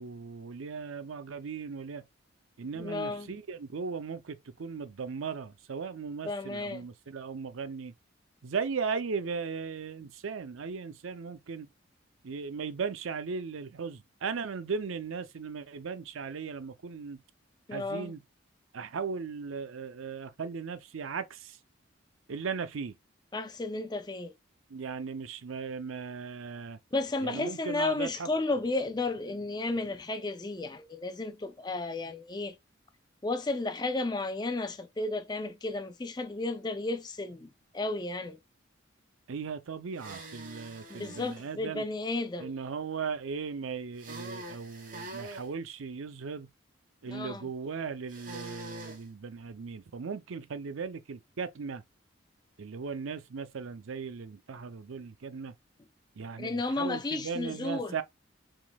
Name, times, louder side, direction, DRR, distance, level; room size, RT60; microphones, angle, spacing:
voice 1, 0.0-2.0 2.6-7.9 8.4-11.7 12.2-17.2 17.7-18.2 18.7-21.6 22.3-23.0 24.7-26.8 27.2-28.3 39.3-41.9 42.4-46.5 47.0-51.8 52.6-55.5 56.2-58.0, right 5 dB, 85° right, 0.5 m, -37 dB
voice 2, 2.7-3.4 6.2-6.8 17.7-18.1 23.3-24.3 26.9-32.6 33.2-37.5 37.7-38.4 40.9-42.5 47.1-47.4 56.4-57.9, left 2 dB, 20° left, 0.5 m, -33 dB
sound 1, 39.9-41.4 44.0-45.5 48.1-49.0, right 1 dB, 45° right, 1.1 m, -44 dB
4.8 x 3.7 x 2.3 m
head